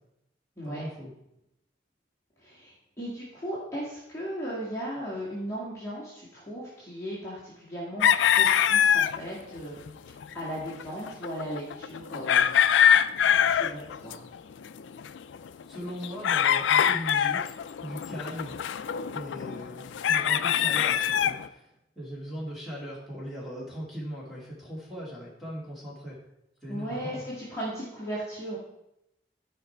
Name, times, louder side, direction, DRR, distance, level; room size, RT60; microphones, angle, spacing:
voice 1, 0.6-1.1 15.7-17.5 17.8-18.6 19.1-21.7 21.9-26.2 26.6-27.2, equal, ahead, -6 dB, 2.7 m, -39 dB
voice 2, 2.4-9.8 10.3-12.5 13.5-14.2 26.7-28.6, equal, 15° left, -8 dB, 2.1 m, -36 dB
sound 1, 8.0-9.2 9.6-9.7 9.9-10.0 10.2-10.3 10.7-14.4 14.6-21.5, left 9 dB, 90° left, 0.4 m, -24 dB
12.5 x 5.3 x 4.5 m, 0.84 s
head